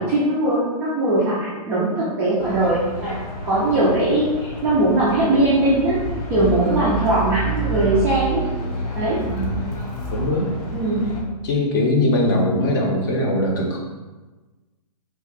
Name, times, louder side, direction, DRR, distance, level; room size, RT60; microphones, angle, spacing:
voice 1, 0.0-6.0 6.3-8.4 9.0-9.2 10.7-11.1, right 1 dB, 10° right, -10 dB, 0.3 m, -20 dB
sound 1, 2.4-11.2, right 2 dB, 70° left, 1.2 m, -29 dB
voice 2, 9.2-9.6 10.1-10.5 11.4-13.8, left 1 dB, 30° left, 0 dB, 0.6 m, -21 dB
3.5 x 2.1 x 3.8 m, 1.2 s
hypercardioid pair, 160°, 20 cm